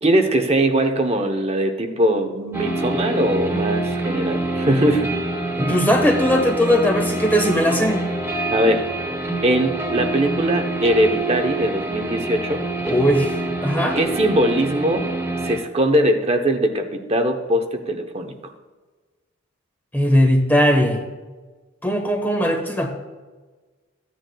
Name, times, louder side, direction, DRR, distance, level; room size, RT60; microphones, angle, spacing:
voice 1, 0.0-5.1 8.5-8.8 9.4-12.6 14.0-15.1 15.4-18.3, right 1 dB, 30° right, 5 dB, 0.8 m, -21 dB
sound 1, 2.5-15.6, right 2 dB, 10° right, 1.7 m, -26 dB
voice 2, 5.6-8.1 12.9-14.0 19.9-21.0 21.8-22.9, equal, 10° left, 3 dB, 1.2 m, -19 dB
15.0 x 9.0 x 2.3 m, 1.3 s
head